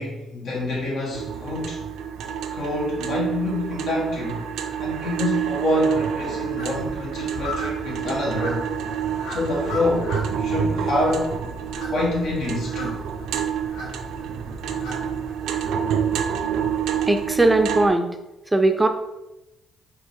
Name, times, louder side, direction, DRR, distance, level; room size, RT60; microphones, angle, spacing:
voice 1, 0.0-1.8 2.5-4.5 4.8-8.6 9.3-11.4 11.9-13.0 15.5-15.8, left 2 dB, 75° left, -2 dB, 1.4 m, -27 dB
sound 1, 1.1-17.9, right 8 dB, 85° right, 0.4 m, -28 dB
sound 2, 6.6-15.3, left 2 dB, 90° left, 1.1 m, -37 dB
voice 2, 17.1-18.1 18.5-18.9, right 2 dB, 10° right, 6 dB, 0.4 m, -19 dB
4.7 x 2.9 x 3.6 m, 0.94 s
cardioid pair, 90°, 0 cm